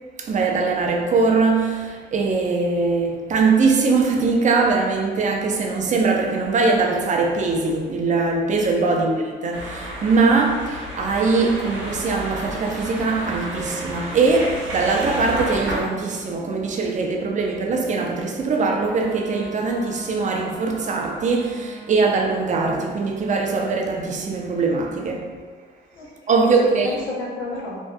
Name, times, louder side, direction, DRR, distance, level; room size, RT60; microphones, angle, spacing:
voice 1, 0.2-25.4 26.3-27.1, right 4 dB, 40° right, 0.4 m, -21 dB
sound 1, 9.5-15.8, equal, 70° right, 0.7 m, -31 dB
Wind instrument woodwind instrument, 18.6-23.4, right 2 dB, 30° left, 0.6 m, -41 dB
voice 2, 25.9-27.8, left 2 dB, 80° left, 0.7 m, -32 dB
2.5 x 2.3 x 2.2 m
cardioid pair, 90°, 20 cm